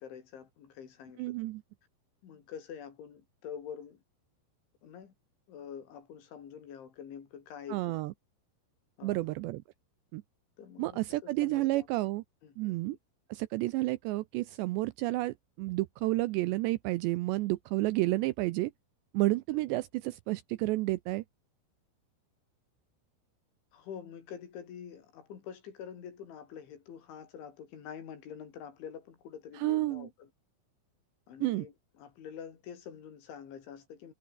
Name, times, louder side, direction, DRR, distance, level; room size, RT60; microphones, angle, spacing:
voice 1, 0.0-1.4 2.2-4.0 4.8-5.1 5.5-8.0 9.0-9.3 10.6-11.9 12.4-13.0 19.5-19.6 23.7-30.3 31.3-34.1, left 8 dB, 70° left, 6.0 m, -46 dB
voice 2, 1.2-1.6 7.7-8.1 9.0-9.6 10.1-10.2 10.8-12.2 12.6-13.0 13.3-18.7 19.1-21.2 29.6-30.1 31.4-31.7, right 19 dB, 90° right, 2.5 m, -31 dB
omnidirectional pair, 5.7 m